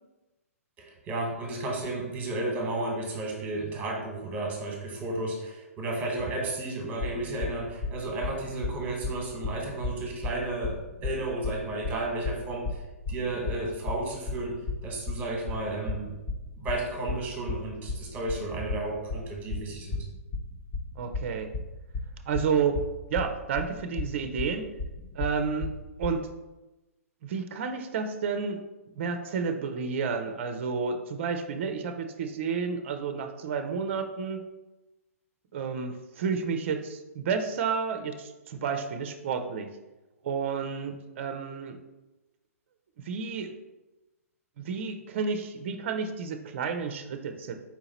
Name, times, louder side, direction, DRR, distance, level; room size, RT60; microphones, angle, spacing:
voice 1, 0.8-12.8 13.1-14.5 14.8-16.2 16.6-20.0, right 2 dB, 20° right, 0 dB, 1.1 m, -33 dB
sound 1, 7.0-26.2, left 3 dB, 25° left, 0.6 m, -34 dB
voice 2, 21.0-21.5 22.3-24.7 25.1-25.7 26.0-26.2 27.2-28.6 28.9-34.4 35.5-39.7 40.2-41.8 43.0-43.5 44.6-47.5, right 5 dB, 50° right, 7 dB, 0.5 m, -31 dB
4.4 x 2.8 x 4.0 m, 1.1 s
figure-of-eight pair, 120°, 8 cm